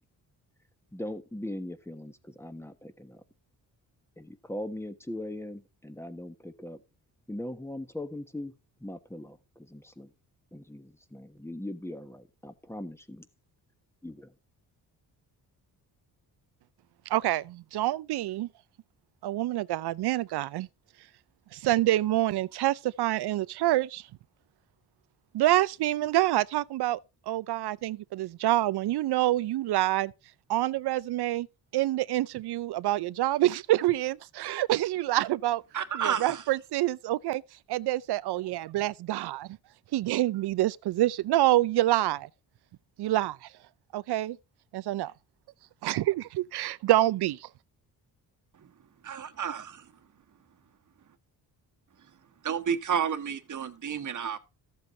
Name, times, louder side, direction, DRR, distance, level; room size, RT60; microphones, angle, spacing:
voice 1, 0.9-3.2 4.2-6.8 7.3-8.5 8.8-10.1 10.5-13.3 14.0-14.3, left 1 dB, 5° left, 1.3 m, -40 dB
voice 2, 17.1-18.5 19.2-20.7 21.5-24.0 25.3-27.0 27.3-30.1 30.5-31.5 31.7-35.6 35.9-37.4 37.7-39.4 39.9-42.3 43.0-43.5 43.9-44.3 44.9-45.1 45.8-47.4, right 15 dB, 75° right, 0.6 m, -27 dB
voice 3, 35.7-36.4 48.6-48.7 49.0-49.9 52.4-54.4, right 8 dB, 50° right, 1.4 m, -31 dB
14.0 x 7.8 x 2.7 m
cardioid pair, 100°, 40 cm